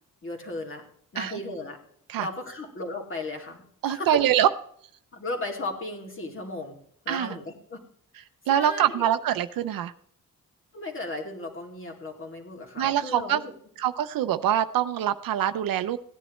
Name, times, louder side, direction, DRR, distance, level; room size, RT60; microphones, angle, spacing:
voice 1, 0.2-0.8 1.1-1.8 2.2-4.2 5.1-6.8 7.0-7.8 8.5-9.1 10.7-13.5, left 2 dB, 35° left, 2 dB, 2.6 m, -35 dB
voice 2, 3.8-4.5 7.1-7.4 8.5-9.9 12.8-13.4 13.8-16.0, right 11 dB, 90° right, 11 dB, 0.6 m, -24 dB
17.0 x 10.0 x 3.1 m, 0.65 s
wide cardioid pair, 120°, 34 cm